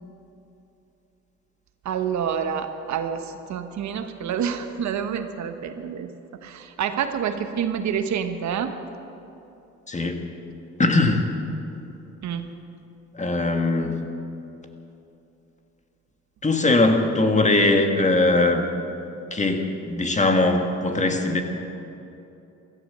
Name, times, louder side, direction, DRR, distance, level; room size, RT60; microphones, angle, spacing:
voice 1, 1.8-6.1 6.4-8.7 12.2-12.5, right 8 dB, 70° right, 8 dB, 1.1 m, -28 dB
voice 2, 9.9-10.2 10.8-11.2 13.1-14.0 16.4-18.6 19.3-21.4, left 2 dB, 25° left, 5 dB, 1.7 m, -20 dB
16.0 x 13.0 x 6.7 m, 2.9 s
cardioid pair, 90°, 30 cm